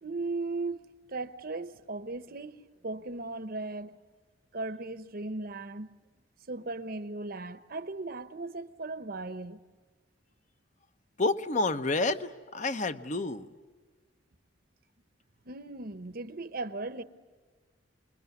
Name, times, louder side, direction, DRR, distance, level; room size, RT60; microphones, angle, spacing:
voice 1, 0.0-4.0 4.5-6.0 6.5-9.6 15.5-17.0, right 3 dB, 50° right, 0.9 m, -37 dB
voice 2, 11.2-13.5, left 2 dB, 40° left, 0.9 m, -29 dB
28.5 x 21.5 x 9.4 m
head